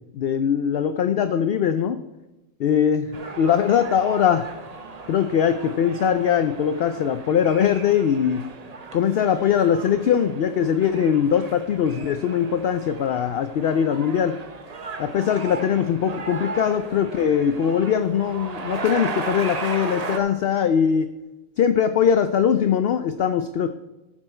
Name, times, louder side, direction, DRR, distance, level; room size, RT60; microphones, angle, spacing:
voice 1, 0.1-2.0 2.6-4.5 5.1-8.4 8.9-14.3 15.0-21.1 21.6-23.7, left 8 dB, 65° left, 10 dB, 0.6 m, -21 dB
sound 1, 3.1-20.2, right 4 dB, 35° right, 0.7 m, -36 dB
13.5 x 6.0 x 4.4 m, 1.0 s
omnidirectional pair, 1.4 m